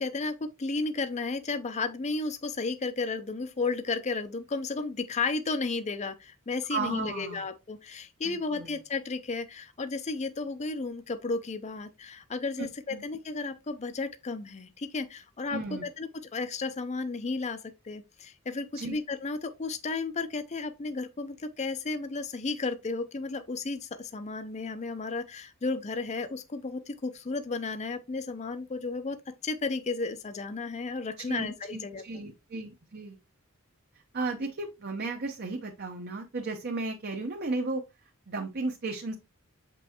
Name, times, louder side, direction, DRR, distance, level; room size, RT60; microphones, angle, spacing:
voice 1, 0.0-29.2 29.4-32.0, left 3 dB, 35° left, 0.5 m, -33 dB
voice 2, 6.7-7.4 8.2-8.7 12.6-13.0 15.5-15.8 18.7-19.0 31.3-33.2 34.1-37.8 38.3-39.1, right 3 dB, 50° right, 0.9 m, -34 dB
7.3 x 5.3 x 2.9 m
head